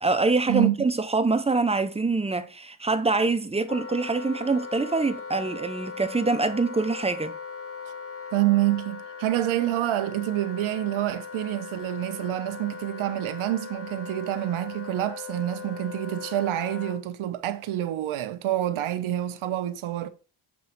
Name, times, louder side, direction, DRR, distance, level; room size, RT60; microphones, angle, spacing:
voice 1, 0.0-7.3, right 3 dB, 15° right, 0.4 m, -25 dB
Wind instrument woodwind instrument, 3.7-17.0, left 6 dB, 30° left, 0.7 m, -39 dB
voice 2, 8.3-20.1, right 14 dB, 75° right, 0.8 m, -27 dB
7.3 x 3.1 x 4.4 m
cardioid pair, 110°, 49 cm